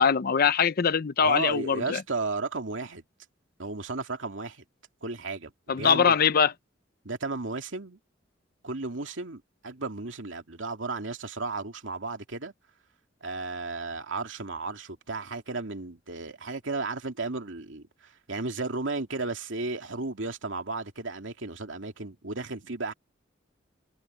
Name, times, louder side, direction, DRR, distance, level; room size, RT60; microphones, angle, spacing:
voice 1, 0.0-2.0 5.7-6.5, left 6 dB, 50° left, 0.6 m, -22 dB
voice 2, 1.2-3.0 3.6-4.6 5.0-6.2 7.0-8.0 8.6-12.5 13.2-22.9, right 3 dB, 85° right, 2.5 m, -34 dB
head